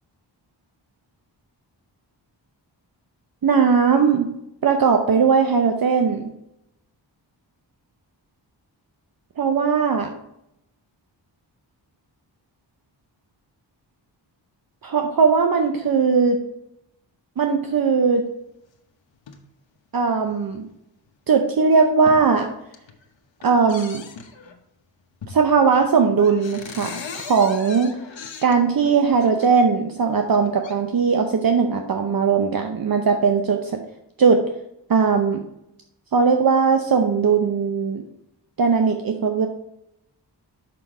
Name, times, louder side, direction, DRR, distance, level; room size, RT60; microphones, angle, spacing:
voice 1, 3.4-4.3 4.6-6.3 9.4-10.1 14.8-16.4 17.4-18.2 19.9-20.7 21.3-22.5 23.4-24.0 25.3-27.9 28.4-33.8 34.2-34.4 34.9-35.4 36.1-38.0 38.6-39.5, right 5 dB, 50° right, 5 dB, 0.7 m, -19 dB
sound 1, 19.1-19.4 20.3-20.4 21.1-21.2 21.6-22.3 22.6-23.0 23.4-24.6 25.2-25.6 25.8-25.9 26.2-29.5 30.2-30.7, left 5 dB, 80° left, 1.0 m, -39 dB
5.9 x 5.8 x 4.8 m, 0.83 s
wide cardioid pair, 100°, 44 cm